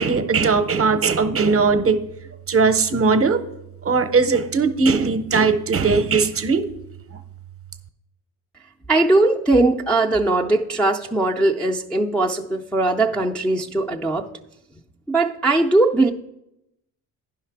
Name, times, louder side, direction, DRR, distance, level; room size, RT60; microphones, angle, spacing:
voice 1, 0.0-2.0 2.5-3.4 3.8-6.7, right 4 dB, 35° right, 11 dB, 0.7 m, -19 dB
voice 2, 8.9-14.3 15.1-16.1, right 2 dB, 5° left, -2 dB, 0.4 m, -19 dB
10.0 x 5.8 x 4.6 m, 0.84 s
cardioid pair, 105°, 41 cm